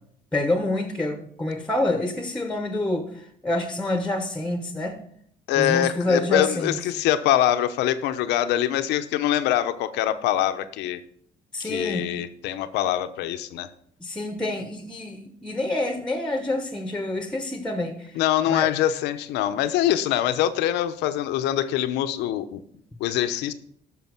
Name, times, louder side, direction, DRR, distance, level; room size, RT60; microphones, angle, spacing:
voice 1, 0.3-5.0 5.6-6.8 11.5-12.1 14.0-18.2 18.5-18.7, left 2 dB, 5° left, 8 dB, 1.2 m, -27 dB
voice 2, 5.5-11.0 11.6-13.7 18.1-22.6 23.0-23.5, left 12 dB, 90° left, 11 dB, 0.9 m, -24 dB
13.0 x 6.1 x 6.1 m, 0.66 s
cardioid pair, 110°, 17 cm